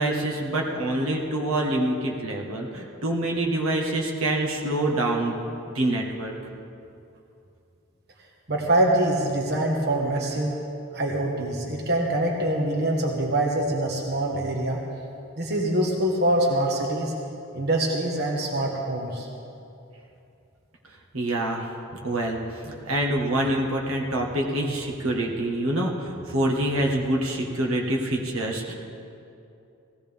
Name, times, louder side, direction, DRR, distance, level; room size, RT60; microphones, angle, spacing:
voice 1, 0.0-5.4 5.7-6.3 21.1-21.7 22.0-28.7, right 1 dB, 75° right, 0 dB, 1.6 m, -26 dB
voice 2, 8.5-10.5 10.9-14.8 15.4-17.1 17.5-19.3, right 1 dB, 45° right, -1 dB, 1.4 m, -24 dB
18.0 x 16.0 x 3.6 m, 2.7 s
head